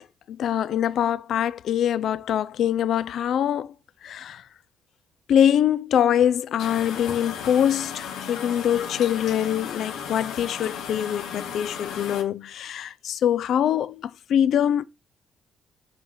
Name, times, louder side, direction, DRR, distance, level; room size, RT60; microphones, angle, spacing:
voice 1, 0.3-3.7 4.0-4.4 5.3-14.8, left 9 dB, 70° left, 0.3 m, -24 dB
sound 1, 6.6-12.2, left 7 dB, 85° left, 1.0 m, -35 dB
5.7 x 3.1 x 5.6 m
cardioid pair, 90°, 0 cm